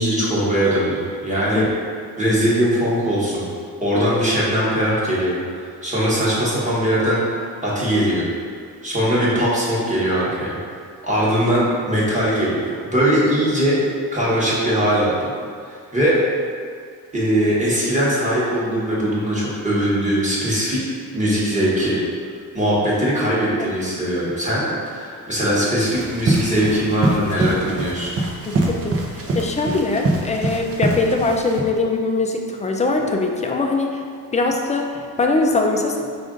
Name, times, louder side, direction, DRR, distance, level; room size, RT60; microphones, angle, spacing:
voice 1, 0.0-1.7 2.2-3.4 3.8-8.2 8.8-10.6 11.0-12.6 12.9-13.8 14.1-15.3 15.7-16.2 17.1-20.8 21.1-22.0 22.5-28.1, equal, 20° right, -7 dB, 1.2 m, -20 dB
sound 1, 25.9-31.6, right 2 dB, 40° right, 0.6 m, -24 dB
voice 2, 28.5-29.0 29.3-34.0 34.3-36.0, left 3 dB, 20° left, 2 dB, 0.3 m, -21 dB
5.0 x 2.5 x 3.7 m, 2.1 s
cardioid pair, 125°, 37 cm